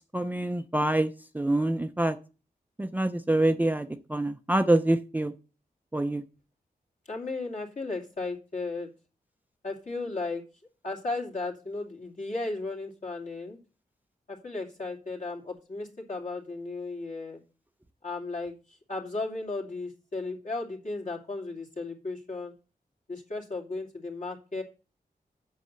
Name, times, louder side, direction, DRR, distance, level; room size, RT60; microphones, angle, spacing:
voice 1, 0.1-2.2 2.8-5.3 5.9-6.2, right 1 dB, 10° right, 8 dB, 0.5 m, -26 dB
voice 2, 7.1-8.9 9.6-10.4 10.8-13.6 14.3-17.4 18.0-18.5 18.9-22.5 23.1-24.6, left 3 dB, 55° left, -1 dB, 2.7 m, -35 dB
8.1 x 6.4 x 6.8 m, 0.34 s
wide cardioid pair, 140°, 16 cm